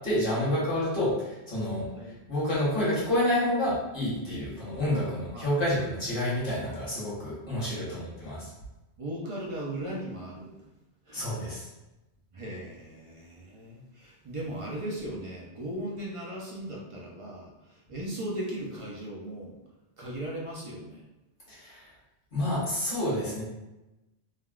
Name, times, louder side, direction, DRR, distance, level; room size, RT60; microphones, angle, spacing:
voice 1, 0.0-1.9 2.3-8.5 11.1-11.7 21.5-21.9 22.3-23.4, left 1 dB, 55° left, -7 dB, 1.3 m, -29 dB
voice 2, 7.4-8.0 9.0-10.6 11.1-11.3 12.3-19.6 20.0-21.0, right 1 dB, 40° right, -4 dB, 0.5 m, -38 dB
3.4 x 2.2 x 2.3 m, 0.99 s
omnidirectional pair, 1.1 m